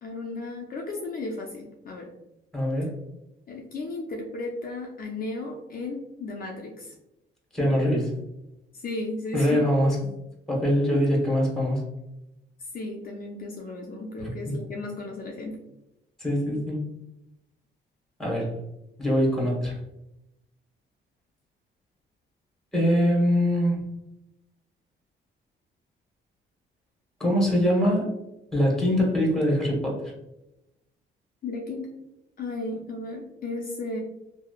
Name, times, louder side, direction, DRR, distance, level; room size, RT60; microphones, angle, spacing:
voice 1, 0.0-2.1 3.5-6.9 8.7-9.7 12.7-15.6 31.4-31.9 32.4-34.0, left 2 dB, 45° left, 0 dB, 0.4 m, -34 dB
voice 2, 2.5-2.9 7.5-8.1 9.3-9.9 10.5-11.8 14.2-14.3 16.2-16.9 18.2-18.6 19.0-19.8 22.7-23.8 27.2-28.1 28.5-30.1, equal, ahead, -2 dB, 1.1 m, -23 dB
2.9 x 2.1 x 2.3 m, 0.90 s
cardioid pair, 90°, 20 cm